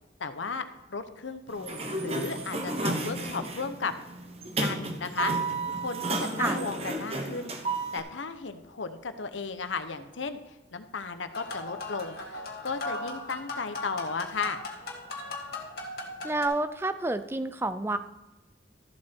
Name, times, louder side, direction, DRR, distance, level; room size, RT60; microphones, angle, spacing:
voice 1, 0.2-3.9 4.6-5.3 5.7-7.6 7.9-14.6, left 4 dB, 90° left, 10 dB, 0.9 m, -35 dB
Sliding door, 1.5-8.0, right 2 dB, 35° right, 1.0 m, -32 dB
sound 1, 11.3-16.5, left 2 dB, 55° left, 1.8 m, -38 dB
voice 2, 16.2-18.0, right 2 dB, 15° right, 11 dB, 0.4 m, -29 dB
13.5 x 7.6 x 4.4 m, 1.1 s
head